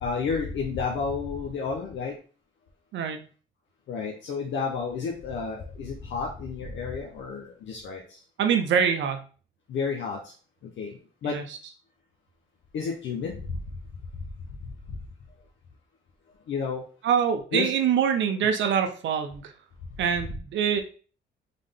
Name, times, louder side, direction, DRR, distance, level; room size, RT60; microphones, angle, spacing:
voice 1, 0.0-2.1 3.9-8.2 9.7-10.3 10.8-11.4 12.7-13.4 16.5-16.8 17.5-17.7, left 5 dB, 70° left, 0 dB, 0.9 m, -31 dB
voice 2, 2.9-3.3 8.4-9.2 11.2-11.6 17.0-19.5 20.0-20.8, right 7 dB, 70° right, 6 dB, 0.6 m, -24 dB
3.7 x 3.5 x 3.7 m, 0.39 s
cardioid pair, 90°, 20 cm